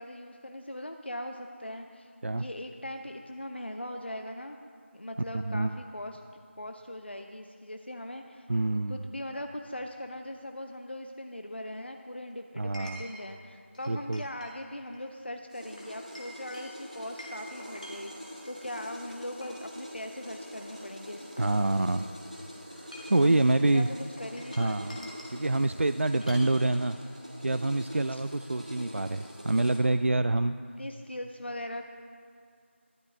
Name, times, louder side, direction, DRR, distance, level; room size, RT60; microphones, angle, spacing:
voice 1, 0.0-4.6 4.9-6.2 6.6-8.5 8.9-21.5 23.2-25.1 28.1-28.2 30.8-31.8, left 1 dB, 55° left, 5 dB, 0.7 m, -40 dB
voice 2, 8.5-9.0 12.6-13.0 13.9-14.2 21.4-22.1 23.1-23.9 24.6-24.9 25.3-27.0 27.4-30.5, right 2 dB, 70° right, 11 dB, 0.3 m, -26 dB
Chink clink, 12.7-13.3 13.7-14.5 14.9-15.1 15.8-18.6 19.1-19.7 20.2-20.3 20.6-22.0 22.7-23.3 24.2-25.4 26.2-26.5, equal, 35° left, 1.8 m, -47 dB
sound 1, 15.5-29.8, equal, 35° right, 2.1 m, -45 dB
13.0 x 11.5 x 3.9 m, 2.3 s
figure-of-eight pair, 180°, 7 cm